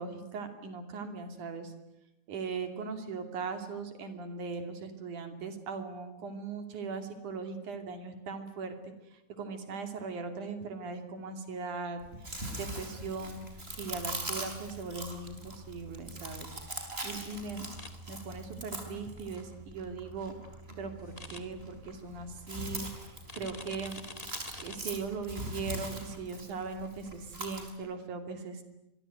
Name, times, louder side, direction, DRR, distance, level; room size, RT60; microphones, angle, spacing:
voice 1, 0.0-1.7 2.3-17.7 18.1-24.0 24.6-28.6, right 4 dB, 80° right, 7 dB, 4.3 m, -39 dB
Chewing mastication, 12.0-27.7, right 1 dB, 20° right, 5.1 m, -42 dB
sound 1, 17.8-17.9 21.2-21.4 23.3-24.8, left 2 dB, 15° left, 1.8 m, -45 dB
26.5 x 23.5 x 9.3 m, 0.90 s
omnidirectional pair, 3.5 m